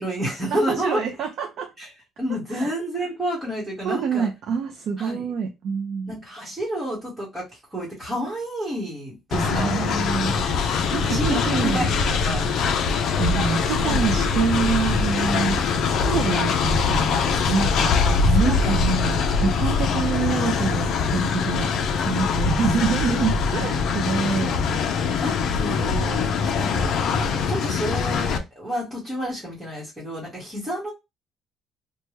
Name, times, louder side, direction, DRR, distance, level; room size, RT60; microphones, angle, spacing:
voice 1, 0.0-1.0 1.8-1.9 2.2-4.3 5.0-5.3 6.1-9.8 10.3-10.6 10.9-12.5 13.8-14.2 18.0-18.8 19.3-19.4 19.8-20.1 23.5-23.7 24.5-24.6 25.2-30.9, equal, 10° right, 1.2 m, -30 dB
voice 2, 0.5-1.7 2.5-2.7 3.8-6.2 9.3-10.3 10.9-11.9 13.0-15.6 15.8-17.1 17.5-18.0 18.2-21.7 22.0-24.6, right 6 dB, 55° right, 0.5 m, -26 dB
Train, 9.3-28.4, left 5 dB, 55° left, 0.5 m, -23 dB
3.3 x 2.2 x 3.0 m
cardioid pair, 165°, 0 cm